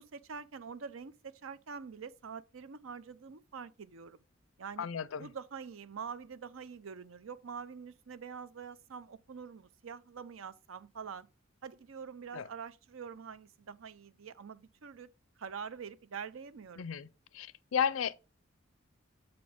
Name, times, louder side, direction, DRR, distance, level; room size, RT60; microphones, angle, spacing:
voice 1, 0.0-4.2 4.6-4.9 5.2-11.3 11.6-15.1 15.4-16.9, right 6 dB, 90° right, 0.6 m, -45 dB
voice 2, 4.8-5.3 12.3-12.5 16.8-17.1 17.3-18.1, left 7 dB, 85° left, 0.5 m, -33 dB
6.9 x 5.2 x 3.5 m
head